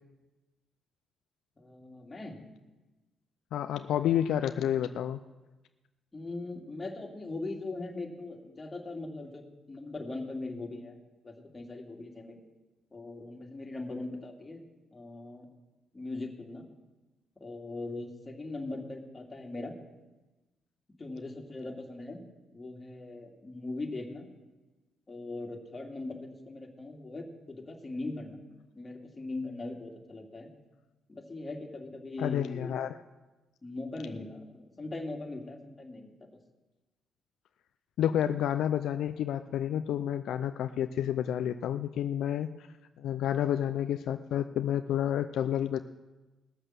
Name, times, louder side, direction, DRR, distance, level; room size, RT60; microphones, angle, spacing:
voice 1, 1.6-2.4 6.1-9.4 9.7-11.0 11.2-12.4 12.9-14.6 14.9-15.5 15.9-16.7 17.4-19.7 21.0-22.2 22.5-24.3 25.1-28.4 28.7-30.5 31.1-32.8 33.6-36.1, left 2 dB, 25° left, 0 dB, 2.6 m, -40 dB
voice 2, 3.5-5.2 32.2-32.9 38.0-42.7 43.0-45.8, left 10 dB, 75° left, 9 dB, 0.4 m, -30 dB
18.0 x 6.7 x 7.4 m, 1.1 s
cardioid pair, 90°, 0 cm